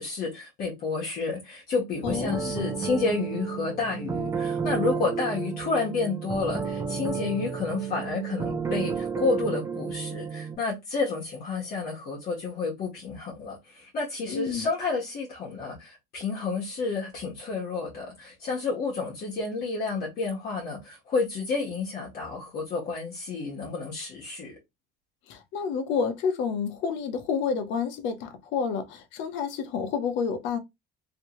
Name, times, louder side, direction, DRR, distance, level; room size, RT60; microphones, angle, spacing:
voice 1, 0.0-24.5, left 4 dB, 50° left, 1.3 m, -30 dB
voice 2, 2.0-2.5 14.3-14.6 25.3-30.6, left 6 dB, 70° left, 0.9 m, -29 dB
sound 1, 2.0-10.5, right 6 dB, 15° right, 0.7 m, -32 dB
3.1 x 2.7 x 3.0 m
cardioid pair, 145°, 20 cm